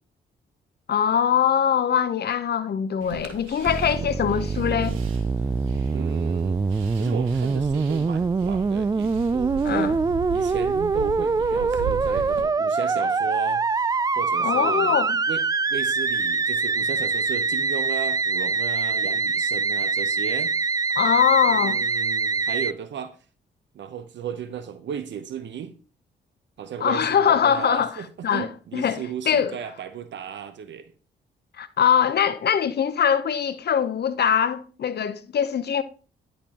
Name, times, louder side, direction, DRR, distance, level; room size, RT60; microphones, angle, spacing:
voice 1, 0.9-5.0 9.6-10.0 14.4-15.2 21.0-21.8 26.8-28.0 28.2-29.6 31.6-35.8, left 8 dB, 55° left, 0.8 m, -22 dB
sound 1, 3.0-12.4, right 6 dB, 85° right, 1.0 m, -37 dB
Musical instrument, 3.6-22.7, right 4 dB, 20° right, 0.3 m, -24 dB
voice 2, 5.9-6.6 6.9-15.4 15.7-20.7 21.5-23.2 23.7-25.7 26.6-30.9, right 8 dB, 65° right, 0.8 m, -35 dB
10.5 x 5.3 x 2.9 m
supercardioid pair, 50°, 20 cm